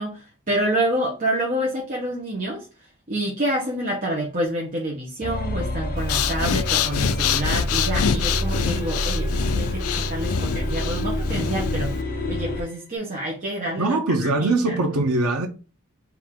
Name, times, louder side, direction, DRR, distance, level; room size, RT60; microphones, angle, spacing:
voice 1, 0.0-2.7 3.1-14.8, right 1 dB, 40° right, 1.0 m, -28 dB
sound 1, 5.2-12.7, left 1 dB, 45° left, 0.8 m, -27 dB
Breathing, 6.0-12.0, left 7 dB, 70° left, 0.4 m, -25 dB
voice 2, 13.8-15.5, right 2 dB, 90° right, 0.9 m, -22 dB
4.6 x 2.7 x 3.7 m
head